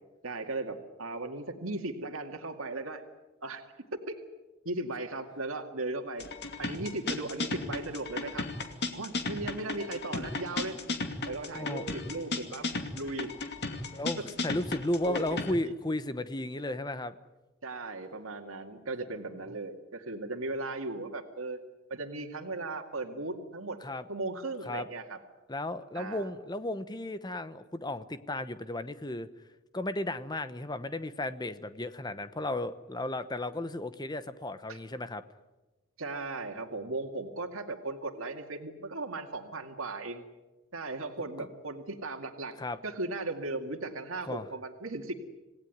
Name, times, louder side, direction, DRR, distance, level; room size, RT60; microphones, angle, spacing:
voice 1, 0.2-3.0 3.4-3.6 3.9-4.2 4.6-6.3 6.6-8.5 8.9-10.8 11.3-13.3 15.0-15.2 15.6-15.7 17.6-21.6 21.9-23.8 24.1-25.2 25.9-26.3 34.7-34.8 36.0-40.2 40.7-42.6 42.8-45.1, right 2 dB, 90° right, 4 dB, 2.2 m, -37 dB
sound 1, 6.2-15.5, left 3 dB, 55° left, 2.6 m, -35 dB
voice 2, 13.9-17.1 23.8-24.0 24.6-24.9 25.5-29.3 29.7-35.2 41.4-41.5 42.6-42.8 44.2-44.5, left 1 dB, 20° left, 12 dB, 1.0 m, -34 dB
27.0 x 18.0 x 9.6 m, 1.1 s
head